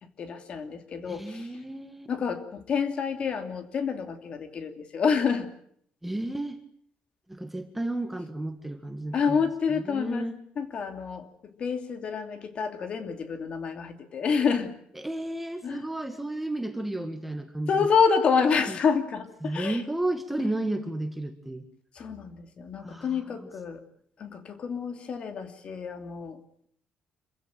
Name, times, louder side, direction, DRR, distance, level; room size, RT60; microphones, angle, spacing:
voice 1, 0.2-1.5 2.1-5.5 9.1-10.3 10.6-14.7 15.6-15.9 17.7-19.8 20.4-20.5 21.9-23.8 24.2-26.7, left 6 dB, 40° left, 8 dB, 2.8 m, -28 dB
voice 2, 1.1-2.1 6.0-6.6 7.3-9.4 9.7-10.4 15.0-17.9 18.5-18.8 19.4-21.6 22.8-23.5, right 1 dB, 5° right, 7 dB, 1.8 m, -33 dB
27.0 x 16.0 x 9.0 m, 0.65 s
cardioid pair, 160°, 3 cm